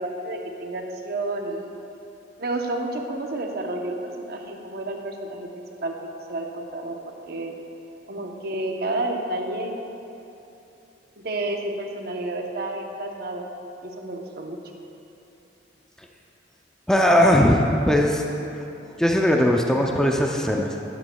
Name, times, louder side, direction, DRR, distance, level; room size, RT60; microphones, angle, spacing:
voice 1, 0.0-1.7 2.4-5.5 5.8-5.9 6.3-7.5 8.1-9.7 11.2-13.4 13.8-14.6, right 2 dB, 55° right, 2 dB, 0.9 m, -30 dB
voice 2, 16.9-18.2 18.5-18.6 19.0-20.7, equal, 5° left, 1 dB, 0.4 m, -19 dB
12.5 x 10.5 x 2.3 m, 2.9 s
head